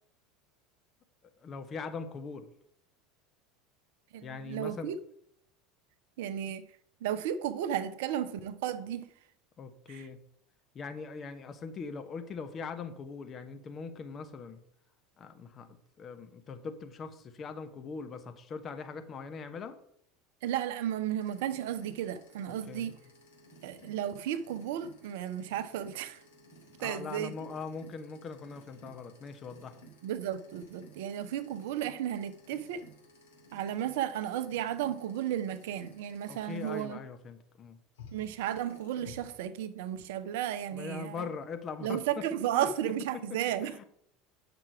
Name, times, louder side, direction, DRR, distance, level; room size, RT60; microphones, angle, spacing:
voice 1, 1.4-2.5 4.2-4.9 9.6-10.2 10.7-14.6 15.2-19.8 22.5-22.9 26.8-29.8 36.3-37.8 40.7-42.2 42.5-42.7 43.3-43.8, left 5 dB, 35° left, 1.1 m, -41 dB
voice 2, 4.1-5.0 6.2-6.7 7.0-9.1 9.9-10.1 20.4-23.0 23.6-26.2 26.8-27.5 30.0-32.8 33.5-37.0 38.1-41.3 41.8-43.8, right 10 dB, 60° right, 0.7 m, -34 dB
sound 1, 21.2-36.8 37.9-39.4, left 1 dB, 70° left, 2.2 m, -56 dB
8.8 x 6.0 x 4.7 m
figure-of-eight pair, 75°, 0 cm